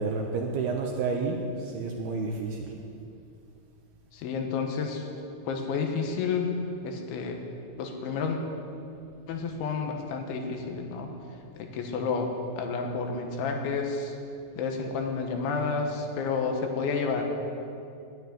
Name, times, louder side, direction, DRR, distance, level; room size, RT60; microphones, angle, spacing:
voice 1, 0.0-2.7, right 4 dB, 75° right, 1 dB, 2.5 m, -30 dB
voice 2, 4.1-5.1 5.5-6.5 6.8-7.4 7.8-8.4 9.3-11.1 11.6-14.2 14.6-17.2, left 5 dB, 80° left, 3 dB, 3.6 m, -30 dB
11.5 x 9.9 x 9.3 m, 2.5 s
omnidirectional pair, 5.4 m